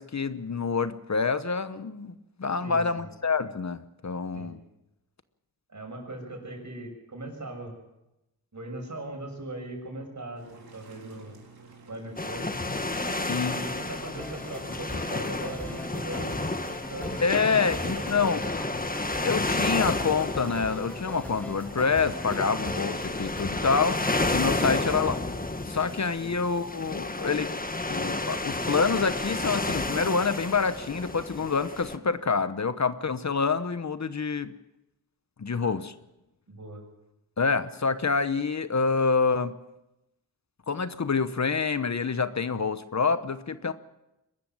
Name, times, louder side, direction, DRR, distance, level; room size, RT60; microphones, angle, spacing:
voice 1, 0.0-4.6 13.2-13.6 17.2-18.4 19.2-24.0 24.3-25.2 25.7-27.5 27.9-34.5 35.4-35.9 37.4-39.5 40.7-43.7, left 5 dB, 50° left, 12 dB, 1.0 m, -27 dB
voice 2, 2.6-3.1 4.3-4.5 5.7-7.8 8.5-11.3 11.9-12.5 13.5-16.4 16.7-17.2 17.7-18.6 24.7-24.9 26.2-26.3 35.6-35.7 36.5-36.8, right 2 dB, 50° right, 3 dB, 6.6 m, -39 dB
sound 1, 10.4-16.1, right 4 dB, 85° right, 4.1 m, -51 dB
sound 2, 12.2-32.0, left 2 dB, 25° left, 1.5 m, -31 dB
sound 3, 13.8-25.1, equal, 5° left, 1.8 m, -41 dB
23.0 x 13.5 x 9.2 m, 0.92 s
wide cardioid pair, 80°, 36 cm